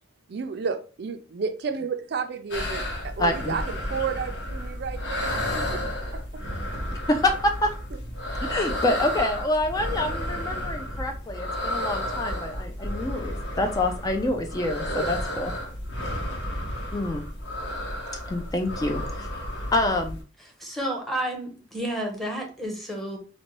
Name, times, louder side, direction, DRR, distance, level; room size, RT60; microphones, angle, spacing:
voice 1, 0.3-5.8 6.1-6.4 14.9-15.1, right 5 dB, 65° right, 8 dB, 0.4 m, -32 dB
sound 1, 2.5-20.2, left 1 dB, 80° left, 1.0 m, -32 dB
voice 2, 3.2-3.5 7.1-7.8 8.5-15.5 16.9-17.2 18.3-19.4 19.7-20.2, left 1 dB, 20° left, 4 dB, 0.3 m, -26 dB
voice 3, 20.6-23.2, right 1 dB, ahead, 0 dB, 0.8 m, -31 dB
4.0 x 2.2 x 3.0 m, 0.35 s
head